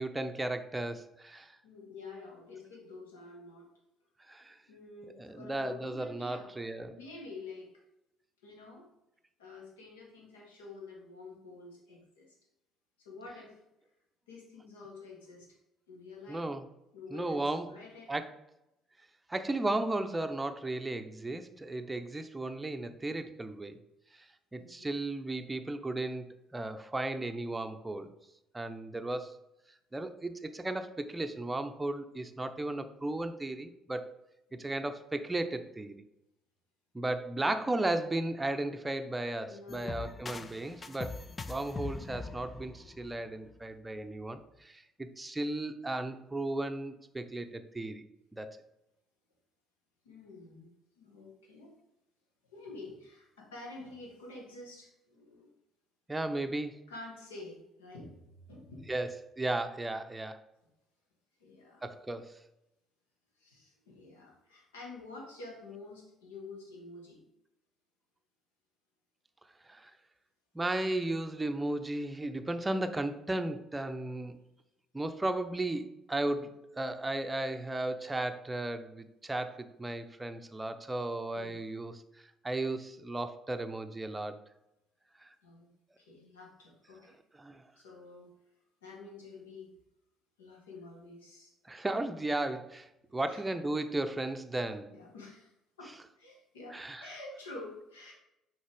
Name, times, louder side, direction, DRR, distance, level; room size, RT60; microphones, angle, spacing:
voice 1, 0.0-1.6 4.3-4.6 5.2-6.9 16.3-16.7 17.1-17.7 18.1-18.3 19.3-23.8 24.1-24.2 24.5-28.1 28.5-29.4 29.9-34.1 34.5-35.9 36.9-41.2 41.5-48.0 48.3-48.6 56.1-56.8 58.9-60.4 61.8-62.3 69.6-69.9 70.5-74.4 74.9-82.0 82.4-84.4 85.2-85.4 87.4-87.6 91.7-94.9 96.7-97.1, right 2 dB, 15° right, 8 dB, 0.6 m, -35 dB
voice 2, 1.6-3.7 4.7-6.5 6.9-7.7 8.4-8.9 9.4-12.4 13.0-13.6 14.3-15.6 15.9-16.5 16.9-17.4 17.7-18.1 24.5-24.9 34.5-34.7 37.4-37.5 39.5-40.4 50.0-50.7 51.0-51.8 52.5-55.5 56.9-58.9 61.4-61.9 63.4-67.2 81.3-81.6 85.4-85.7 86.0-87.2 87.7-88.3 88.8-89.7 90.4-91.5 93.2-93.4 94.9-95.5 95.8-98.1, left 3 dB, 75° left, -1 dB, 1.4 m, -49 dB
sound 1, 39.7-43.6, left 4 dB, 30° left, 0.4 m, -42 dB
6.3 x 4.6 x 3.5 m, 0.88 s
figure-of-eight pair, 50°, 0 cm